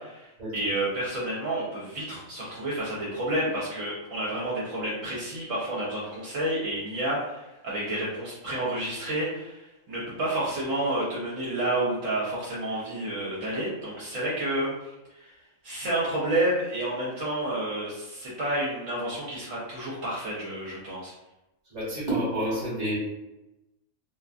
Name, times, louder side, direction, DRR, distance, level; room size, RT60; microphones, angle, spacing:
voice 1, 0.0-15.3 15.6-21.1, right 1 dB, 65° right, -6 dB, 1.0 m, -30 dB
voice 2, 21.6-23.0, right 1 dB, 30° right, -8 dB, 1.0 m, -29 dB
2.6 x 2.3 x 2.4 m, 0.96 s
omnidirectional pair, 1.5 m